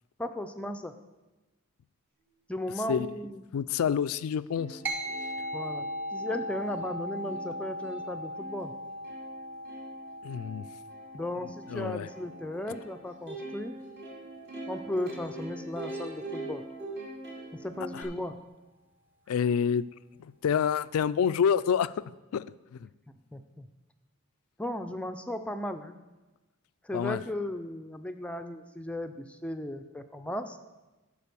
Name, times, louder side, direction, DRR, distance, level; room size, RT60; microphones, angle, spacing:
voice 1, 0.2-0.9 2.5-3.4 5.5-5.9 6.1-8.7 11.1-13.8 14.7-16.6 17.6-18.3 23.3-23.7 24.6-26.0 26.8-30.6, left 1 dB, 5° left, 8 dB, 0.4 m, -36 dB
voice 2, 3.5-4.8 10.2-10.7 11.7-12.1 17.9-18.1 19.3-19.9 20.2-22.0 22.3-22.9 26.9-27.2, left 7 dB, 90° left, 17 dB, 0.3 m, -28 dB
Plucked string instrument, 4.2-4.3 4.5-18.0, right 2 dB, 55° right, 2.3 m, -43 dB
sound 1, 4.9-14.6, equal, 10° right, 0.8 m, -39 dB
12.0 x 4.9 x 6.9 m, 1.1 s
head